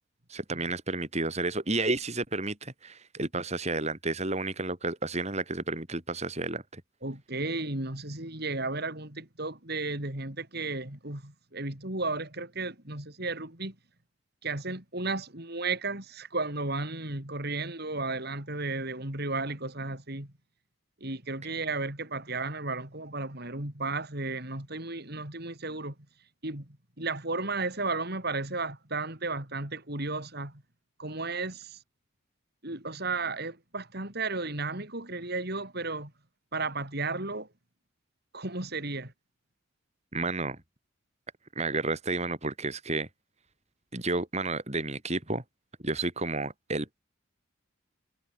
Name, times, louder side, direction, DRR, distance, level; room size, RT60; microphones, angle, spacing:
voice 1, 0.3-6.8 40.1-40.6 41.6-43.1 43.9-45.4 45.8-47.0, right 2 dB, 30° right, 4.2 m, -31 dB
voice 2, 7.0-13.7 14.4-20.3 21.0-25.9 26.4-30.6 31.0-31.8 32.6-36.1 36.5-37.5 38.3-39.1, right 3 dB, 50° right, 4.4 m, -34 dB
head